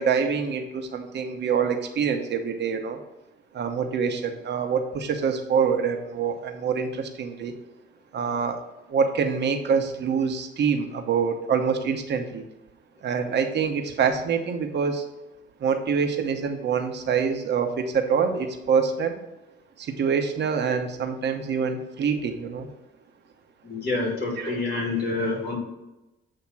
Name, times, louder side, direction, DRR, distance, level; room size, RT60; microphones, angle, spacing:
voice 1, 0.0-3.0 3.5-7.5 8.1-8.6 8.9-12.4 13.0-15.0 15.6-19.1 19.8-22.7 24.4-24.8, right 6 dB, 60° right, 5 dB, 1.0 m, -25 dB
voice 2, 23.6-25.5, left 3 dB, 55° left, -1 dB, 2.7 m, -27 dB
8.5 x 2.9 x 5.8 m, 0.99 s
cardioid pair, 90°, 20 cm